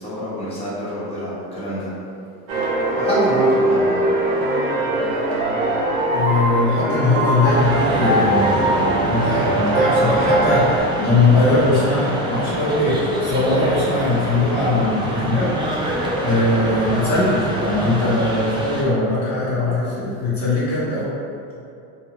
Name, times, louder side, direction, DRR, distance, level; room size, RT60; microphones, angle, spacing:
voice 1, 0.0-1.9 2.9-4.0, equal, 15° left, -10 dB, 1.0 m, -26 dB
sound 1, 2.5-10.8, right 1 dB, 65° right, 0.7 m, -20 dB
voice 2, 6.1-15.5 16.2-21.1, left 2 dB, 45° left, -9 dB, 0.9 m, -20 dB
sound 2, 7.4-18.8, right 1 dB, 10° right, 0.3 m, -26 dB
2.4 x 2.2 x 3.1 m, 2.5 s
supercardioid pair, 95°, 41 cm